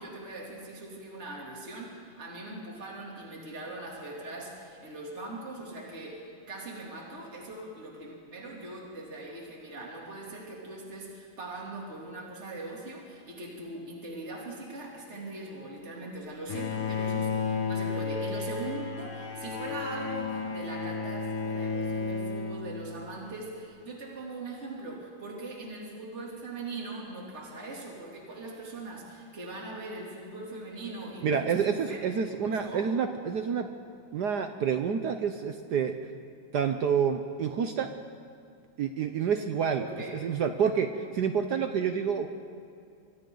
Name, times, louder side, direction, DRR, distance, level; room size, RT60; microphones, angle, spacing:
voice 1, 0.0-32.0 32.4-32.8 39.8-40.1, right 2 dB, 30° right, -3 dB, 3.3 m, -41 dB
Bowed string instrument, 16.5-23.3, left 4 dB, 80° left, 2.8 m, -33 dB
voice 2, 31.2-33.7 34.1-35.9 36.5-37.9 38.8-39.8 40.2-42.3, right 7 dB, 60° right, 7 dB, 1.2 m, -28 dB
28.0 x 24.0 x 3.9 m, 2.5 s
omnidirectional pair, 2.4 m